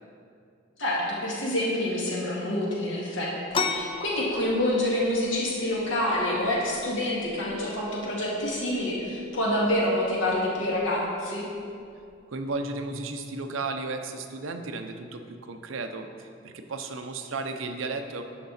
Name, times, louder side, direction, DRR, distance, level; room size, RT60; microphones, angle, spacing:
voice 1, 0.8-11.5, left 1 dB, 65° left, -5 dB, 2.2 m, -27 dB
sound 1, 3.5-12.9, left 4 dB, 25° left, 0.4 m, -38 dB
voice 2, 12.3-15.2 15.5-18.2, right 3 dB, 80° right, 6 dB, 0.7 m, -34 dB
10.0 x 6.0 x 4.2 m, 2.4 s
head